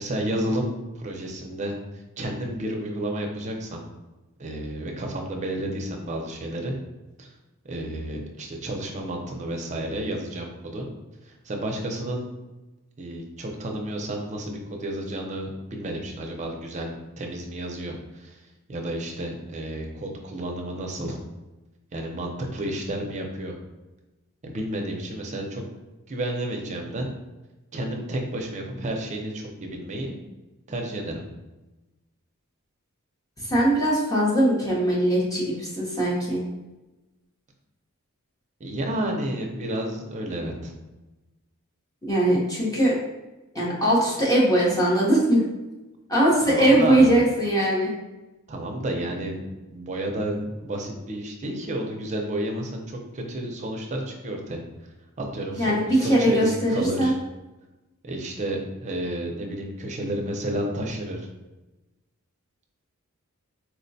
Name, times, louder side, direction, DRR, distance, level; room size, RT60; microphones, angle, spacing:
voice 1, 0.0-1.8 2.2-3.8 4.4-6.7 7.2-7.3 7.7-10.9 11.2-12.3 13.0-21.2 21.9-23.6 24.4-25.6 26.1-27.1 27.7-30.2 30.7-31.2 38.6-40.7 46.4-47.1 48.5-49.4 49.7-54.6 55.2-57.2 58.0-61.2, right 1 dB, 30° right, 1 dB, 0.5 m, -31 dB
voice 2, 33.5-36.4 42.1-43.0 43.5-45.4 46.1-47.9 55.6-57.1, right 1 dB, 15° left, -5 dB, 0.7 m, -21 dB
4.4 x 2.1 x 2.6 m, 1.1 s
head